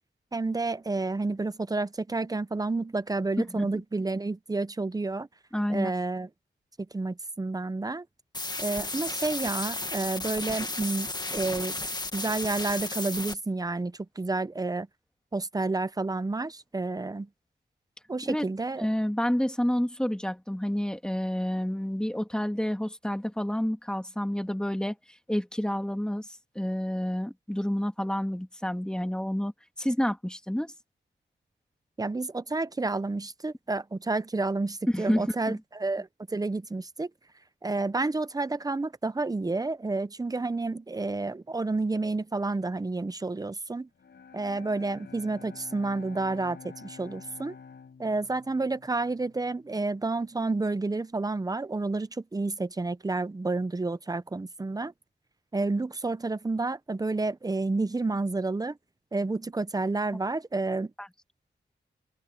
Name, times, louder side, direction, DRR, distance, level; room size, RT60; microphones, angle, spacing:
voice 1, 0.3-5.3 5.7-6.3 6.9-8.1 8.6-11.7 12.1-14.9 15.3-17.3 18.1-18.9 32.0-37.1 37.6-43.9 44.3-47.6 48.0-54.9 55.5-58.8 59.1-60.9, right 3 dB, 20° right, 0.7 m, -30 dB
voice 2, 5.5-5.9 18.3-18.4 18.8-25.0 25.3-26.3 26.6-29.5 29.8-30.7 34.9-35.6 61.0-61.1, equal, 5° left, 1.9 m, -29 dB
sound 1, 8.3-13.3, left 2 dB, 20° left, 1.6 m, -33 dB
Bowed string instrument, 43.9-50.0, left 6 dB, 70° left, 4.4 m, -49 dB
open air
wide cardioid pair, 130°, 19 cm